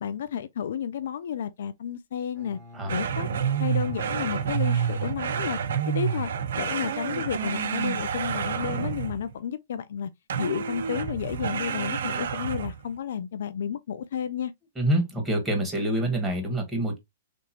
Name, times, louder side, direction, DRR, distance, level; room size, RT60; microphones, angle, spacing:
voice 1, 0.0-2.6 2.9-3.3 3.6-5.6 5.9-6.3 6.6-10.1 10.4-14.5, left 8 dB, 70° left, 0.3 m, -31 dB
Bowed string instrument, 2.3-6.2, left 3 dB, 15° left, 1.8 m, -45 dB
sound 1, 2.9-9.3 10.3-12.9, right 8 dB, 75° right, 0.6 m, -29 dB
voice 2, 14.8-17.0, right 1 dB, 10° right, 1.5 m, -26 dB
3.4 x 2.9 x 2.8 m
hypercardioid pair, 130°, 0 cm